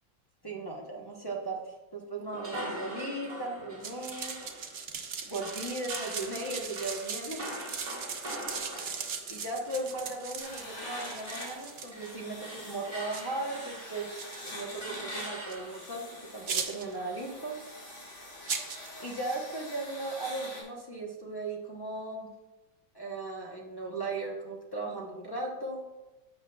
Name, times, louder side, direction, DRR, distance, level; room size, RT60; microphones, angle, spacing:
voice 1, 0.4-4.4 5.2-7.5 7.9-8.0 9.3-14.1 14.4-16.1 16.3-17.6 19.0-22.3 22.9-25.8, right 2 dB, 35° left, -1 dB, 0.3 m, -37 dB
sound 1, 2.3-11.0 11.2-14.3 14.8-16.0, right 1 dB, 35° right, 3.3 m, -43 dB
sound 2, 3.8-12.1 12.6-12.7 13.1-13.2 14.2-14.8 15.5-15.6 16.5-17.0 18.5-18.9, right 6 dB, 75° right, 0.5 m, -38 dB
sound 3, 10.4-20.6, left 1 dB, 80° left, 3.2 m, -45 dB
12.0 x 7.9 x 2.3 m, 1.1 s
omnidirectional pair, 2.1 m